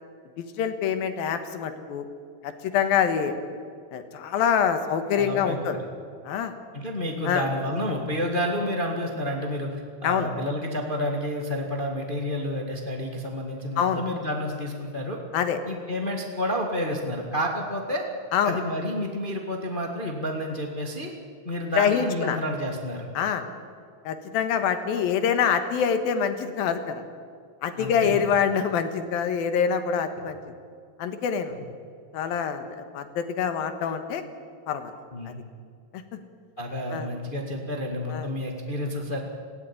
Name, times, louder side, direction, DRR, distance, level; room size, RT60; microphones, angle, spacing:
voice 1, 0.4-2.1 2.4-3.3 3.9-5.8 6.2-6.5 7.3-7.4 10.0-10.3 13.8-14.0 15.3-15.6 18.3-18.6 21.7-22.4 23.1-23.4 24.0-27.0 27.6-30.4 31.0-31.6 32.1-32.7 32.9-34.2 34.7-34.9 35.3-35.4 35.9-36.2 36.9-37.1 38.1-38.3, left 7 dB, 70° left, 8 dB, 3.0 m, -25 dB
voice 2, 5.2-5.6 6.7-9.7 10.0-15.2 15.7-18.0 18.4-21.1 21.4-23.1 27.8-28.3 35.1-35.4 36.6-39.2, equal, 30° left, 2 dB, 0.9 m, -30 dB
19.0 x 16.5 x 10.0 m, 2.2 s
omnidirectional pair, 4.6 m